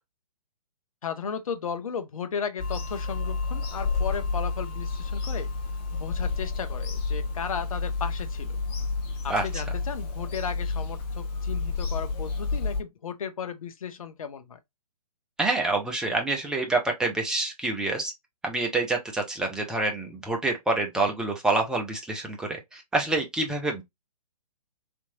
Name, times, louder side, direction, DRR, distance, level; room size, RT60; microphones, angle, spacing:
voice 1, 1.0-5.5 5.9-8.6 9.2-14.6, left 6 dB, 60° left, 0.7 m, -35 dB
Bird vocalization bird call bird song / Telephone, 2.6-12.8, left 4 dB, 25° left, 1.2 m, -30 dB
voice 2, 9.3-9.6 15.4-18.1 18.4-23.8, right 2 dB, 5° right, 0.5 m, -27 dB
3.5 x 2.9 x 2.7 m
figure-of-eight pair, 130°, 20 cm